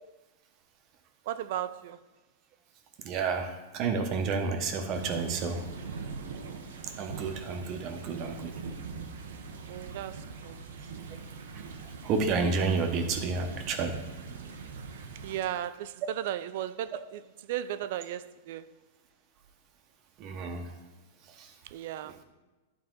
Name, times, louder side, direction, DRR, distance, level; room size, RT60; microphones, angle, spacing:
voice 1, 1.3-2.0 9.7-10.6 15.2-18.7 21.6-22.2, right 11 dB, 60° right, 0.4 m, -36 dB
voice 2, 3.0-5.6 7.0-8.5 12.0-13.9 20.2-20.6, right 4 dB, 40° right, 1.0 m, -30 dB
sound 1, 4.9-15.4, right 5 dB, 85° right, 0.8 m, -42 dB
11.0 x 4.1 x 3.9 m
hypercardioid pair, 140°, 0 cm